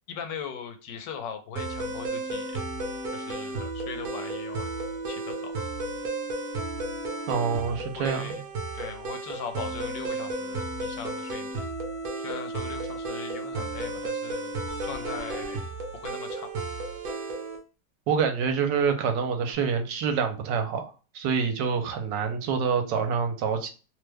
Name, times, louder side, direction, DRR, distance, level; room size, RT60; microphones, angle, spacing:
voice 1, 0.1-2.6 3.1-4.7 5.1-5.5 7.7-8.4 8.7-11.6 12.2-14.5 14.8-15.6 15.9-16.5, left 7 dB, 80° left, 7 dB, 1.3 m, -40 dB
sound 1, 1.6-17.6, right 2 dB, 60° right, 1.1 m, -33 dB
voice 2, 7.3-8.4 18.1-23.7, right 6 dB, 80° right, 6 dB, 1.3 m, -27 dB
3.1 x 2.1 x 3.3 m, 0.33 s
omnidirectional pair, 1.9 m